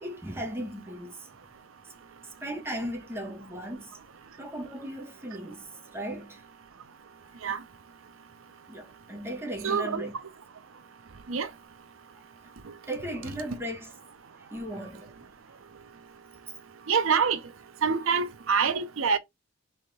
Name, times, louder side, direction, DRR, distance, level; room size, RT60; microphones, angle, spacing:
voice 1, 0.0-1.3 2.4-3.9 4.4-6.4 7.3-7.4 8.7-10.1 12.9-13.9 14.5-15.1, right 1 dB, 10° right, 1.0 m, -37 dB
voice 2, 9.6-10.0 11.3-11.5 16.9-17.4 17.8-19.2, right 6 dB, 85° right, 0.6 m, -25 dB
3.4 x 3.3 x 4.1 m
head